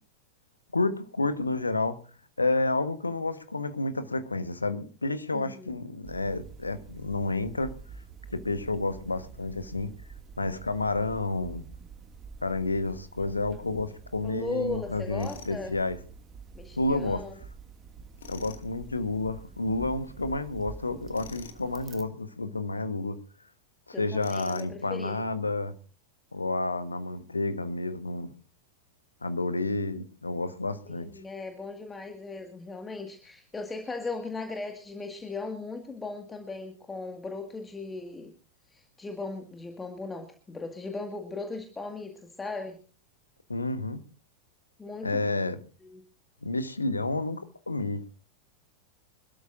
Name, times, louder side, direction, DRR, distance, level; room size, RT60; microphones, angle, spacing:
voice 1, 0.7-2.0 2.4-7.7 8.3-9.9 10.4-11.6 12.4-16.0 16.8-17.2 18.3-23.2 23.9-25.7 26.3-28.3 29.2-31.1 43.5-44.0 45.0-45.6 46.4-48.0, left 2 dB, 80° left, 1.3 m, -30 dB
voice 2, 5.3-5.7 14.2-15.7 16.6-17.4 23.9-25.2 30.9-38.3 38.7-42.8 44.8-45.3 45.8-46.0, left 3 dB, 15° left, 1.9 m, -38 dB
sound 1, 6.0-22.0, right 5 dB, 25° right, 2.2 m, -47 dB
Tools, 15.2-15.6 18.2-18.6 21.1-21.6 24.2-24.8, left 6 dB, 65° left, 1.9 m, -45 dB
26.0 x 13.0 x 2.6 m
figure-of-eight pair, 90°, 0 cm